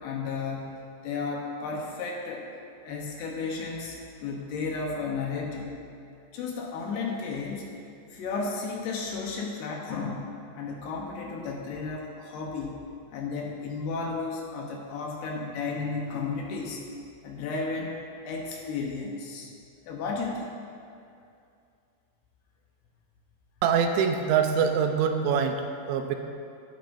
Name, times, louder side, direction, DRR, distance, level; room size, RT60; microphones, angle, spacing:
voice 1, 0.0-2.5 2.8-5.7 6.3-7.7 8.1-12.8 13.1-16.8 17.2-19.5 19.9-20.5, left 4 dB, 75° left, -1 dB, 2.7 m, -33 dB
voice 2, 23.6-26.2, right 6 dB, 85° right, 5 dB, 3.1 m, -24 dB
13.0 x 12.5 x 2.6 m, 2.4 s
omnidirectional pair, 5.3 m